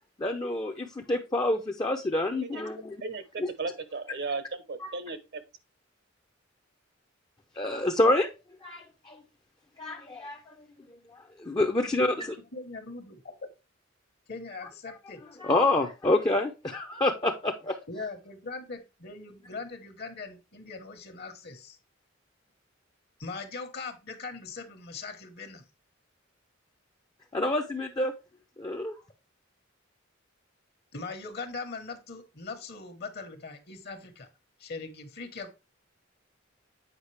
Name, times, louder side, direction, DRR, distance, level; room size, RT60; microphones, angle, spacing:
voice 1, 0.2-3.0 3.4-3.5 4.8-4.9 7.6-8.3 8.6-9.2 9.8-10.6 11.1-12.4 15.4-17.8 27.3-28.1 28.6-29.0, left 2 dB, 20° left, 0.6 m, -27 dB
voice 2, 3.0-5.4, right 3 dB, 60° right, 0.9 m, -36 dB
voice 3, 12.5-13.3 14.3-15.2 17.9-21.8 23.2-25.6 30.9-34.3 34.6-35.6, left 4 dB, 55° left, 1.3 m, -40 dB
8.1 x 5.0 x 3.3 m
head